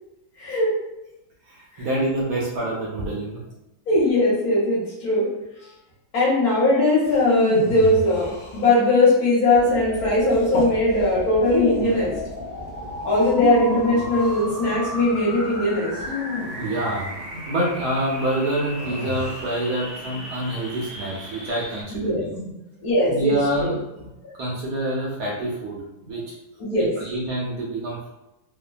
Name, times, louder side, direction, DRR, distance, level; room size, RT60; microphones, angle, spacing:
voice 1, 0.4-0.8 1.7-1.9 3.9-5.3 6.1-12.1 13.0-16.0 21.9-22.3 22.8-23.3 23.6-23.7 26.6-26.9, left 1 dB, 60° left, -7 dB, 1.2 m, -20 dB
voice 2, 1.5-3.4 16.6-17.1 17.3-22.5 23.1-24.1 24.4-26.3 26.8-28.1, right 1 dB, 70° right, -4 dB, 1.0 m, -27 dB
sound 1, 7.0-9.0 10.3-10.8 11.4-12.1 13.2-14.5 16.0-17.2 18.8-19.6, left 4 dB, 80° left, 0.7 m, -30 dB
sound 2, 9.5-21.8, left 1 dB, 50° right, 0.4 m, -35 dB
3.2 x 2.2 x 2.2 m, 0.92 s
omnidirectional pair, 2.1 m